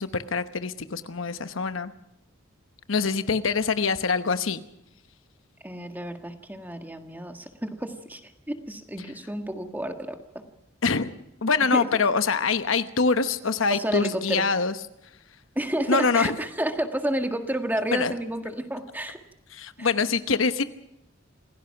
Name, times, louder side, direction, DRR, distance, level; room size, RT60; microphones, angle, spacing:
voice 1, 0.0-1.9 2.9-4.6 10.8-11.1 11.4-14.7 15.9-16.3 17.9-18.2 19.5-20.6, left 4 dB, 85° left, 11 dB, 1.0 m, -24 dB
voice 2, 5.6-10.2 11.7-11.8 13.7-14.4 15.5-19.2 19.8-19.9, right 1 dB, 10° right, 5 dB, 1.6 m, -30 dB
26.5 x 16.5 x 5.9 m, 0.82 s
head